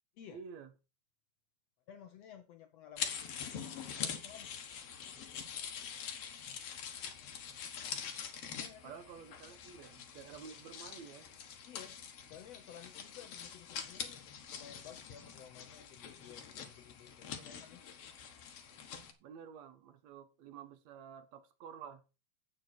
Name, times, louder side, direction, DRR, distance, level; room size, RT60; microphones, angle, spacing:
voice 1, 0.3-0.7 8.8-11.3 19.2-22.0, right 7 dB, 65° right, 1.9 m, -50 dB
voice 2, 1.9-4.5 8.5-8.9 11.7-18.0, left 9 dB, 80° left, 1.4 m, -55 dB
sound 1, 3.0-19.1, left 7 dB, 55° left, 2.0 m, -45 dB
9.4 x 7.9 x 4.4 m
omnidirectional pair, 4.0 m